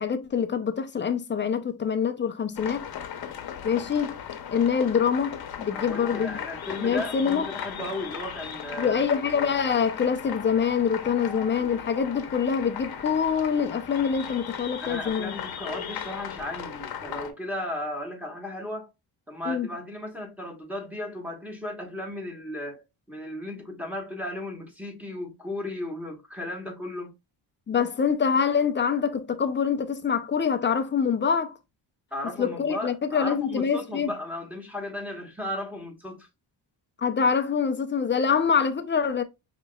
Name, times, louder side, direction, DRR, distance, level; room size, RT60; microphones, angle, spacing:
voice 1, 0.0-2.9 3.6-4.2 4.5-6.4 6.8-7.5 8.8-15.3 19.5-19.7 27.7-31.6 32.4-34.1 37.0-39.2, left 6 dB, 25° left, 0.4 m, -25 dB
sound 1, 2.6-17.3, left 8 dB, 55° left, 0.8 m, -37 dB
voice 2, 5.7-9.0 14.8-18.9 19.3-27.1 32.1-36.3, left 1 dB, 5° right, 1.1 m, -35 dB
5.2 x 2.9 x 2.2 m
cardioid pair, 120°, 45 cm